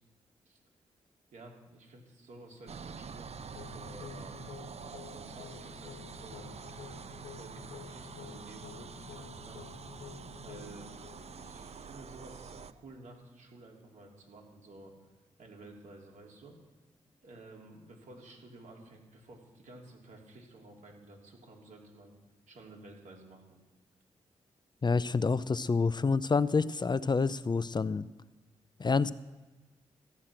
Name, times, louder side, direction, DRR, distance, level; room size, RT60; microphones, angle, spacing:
voice 1, 1.3-4.6 5.1-6.6 6.9-9.6 10.4-10.9 11.4-14.9 15.4-16.6 17.2-22.1 22.5-23.6, right 2 dB, 70° right, 0 dB, 3.2 m, -52 dB
sound 1, 2.7-12.7, right 5 dB, 50° right, 0.7 m, -46 dB
sound 2, 3.5-12.5, left 7 dB, 80° left, 1.3 m, -50 dB
voice 2, 24.8-28.1 28.8-29.1, left 4 dB, 35° left, 16 dB, 0.6 m, -28 dB
14.0 x 8.6 x 6.0 m, 1.2 s
supercardioid pair, 40°, 13 cm